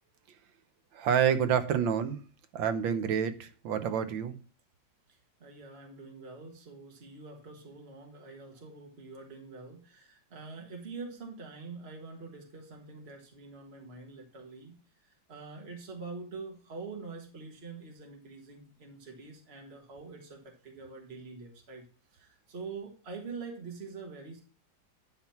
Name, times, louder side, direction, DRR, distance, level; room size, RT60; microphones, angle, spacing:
voice 1, 0.9-2.2 2.5-4.4, right 8 dB, 85° right, 1.6 m, -28 dB
voice 2, 5.1-14.8 15.0-21.8 22.1-24.4, right 4 dB, 35° right, 1.7 m, -45 dB
11.0 x 4.0 x 5.7 m
omnidirectional pair, 2.0 m